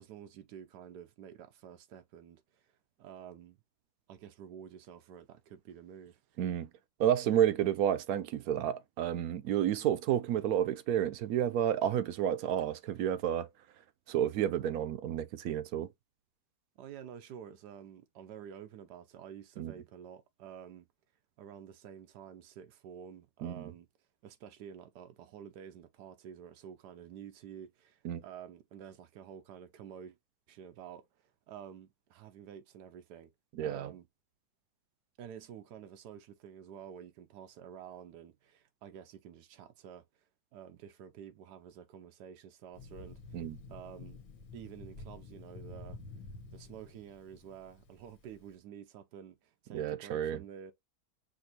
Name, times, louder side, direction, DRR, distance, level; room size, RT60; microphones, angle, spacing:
voice 1, 0.0-3.6 4.1-6.4 16.8-20.9 21.4-23.9 24.2-30.2 30.5-33.3 33.6-34.1 35.2-40.3 40.5-43.4 43.7-44.2 44.5-46.0 46.5-50.7, right 9 dB, 90° right, 1.2 m, -50 dB
voice 2, 6.4-6.7 7.0-13.5 14.1-15.9 19.6-19.7 23.4-23.7 28.0-28.2 33.6-33.9 43.3-43.6 49.7-50.4, right 10 dB, 70° right, 1.0 m, -30 dB
Thunder, 42.7-48.4, left 3 dB, 60° left, 1.4 m, -49 dB
6.0 x 2.8 x 2.8 m
omnidirectional pair, 1.7 m